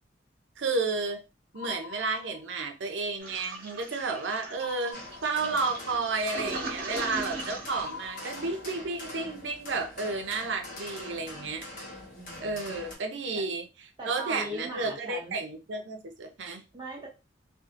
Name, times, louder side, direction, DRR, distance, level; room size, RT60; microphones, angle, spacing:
voice 1, 0.6-1.2 1.5-11.7 12.4-13.6 14.0-16.6, right 3 dB, 75° right, 0.6 m, -32 dB
sound 1, 1.5-2.8 4.6-5.8 7.8-9.0, left 6 dB, 70° left, 0.5 m, -45 dB
Toilet flush, 3.2-8.9, right 2 dB, 50° right, 1.2 m, -39 dB
sound 2, 4.9-12.9, left 1 dB, 50° left, 1.0 m, -44 dB
voice 2, 12.1-12.8 13.3-13.4 14.0-15.4 16.7-17.1, right 1 dB, 25° right, 0.7 m, -40 dB
2.7 x 2.4 x 2.5 m
head